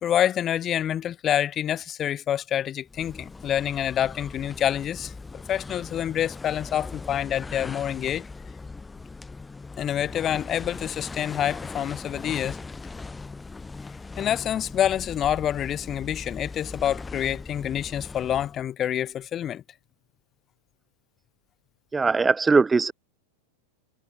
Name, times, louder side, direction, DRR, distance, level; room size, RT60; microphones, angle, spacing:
voice 1, 0.0-8.2 9.8-12.6 14.2-19.6, left 10 dB, 30° left, 0.9 m, -27 dB
sound 1, 2.9-18.7, left 3 dB, 10° left, 2.2 m, -40 dB
voice 2, 21.9-22.9, right 4 dB, 15° right, 0.4 m, -20 dB
figure-of-eight pair, 90°, 0 cm